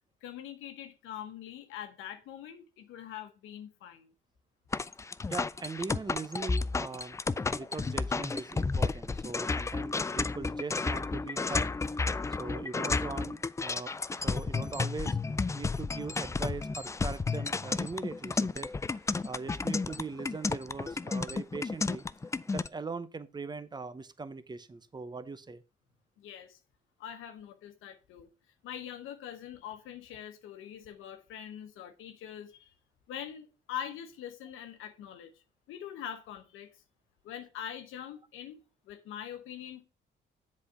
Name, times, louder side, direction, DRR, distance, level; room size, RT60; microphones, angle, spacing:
voice 1, 0.2-4.1 26.2-26.6 27.0-28.3 28.6-32.7 33.1-35.3 35.7-36.7 37.2-39.8, left 10 dB, 90° left, 1.0 m, -43 dB
sound 1, 4.7-22.7, left 4 dB, 15° left, 0.3 m, -32 dB
voice 2, 5.3-7.2 7.5-12.0 12.4-15.2 15.5-22.0 22.5-25.6, right 4 dB, 20° right, 0.8 m, -41 dB
7.6 x 4.2 x 5.5 m
cardioid pair, 90°, 20 cm